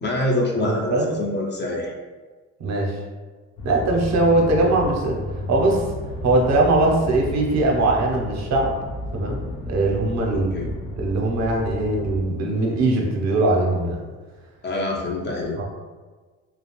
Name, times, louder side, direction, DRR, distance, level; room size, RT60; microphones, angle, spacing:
voice 1, 0.0-1.9 10.3-10.6 14.6-15.6, left 1 dB, 30° left, -1 dB, 0.5 m, -25 dB
voice 2, 0.6-1.1 2.6-3.0 3.6-5.2 5.5-5.8 6.2-8.7 9.1-14.0 15.6-15.7, right 2 dB, 50° right, 0 dB, 0.6 m, -21 dB
sound 1, 3.6-12.2, left 2 dB, 80° left, 0.6 m, -32 dB
2.3 x 2.0 x 2.9 m, 1.4 s
supercardioid pair, 60°, 34 cm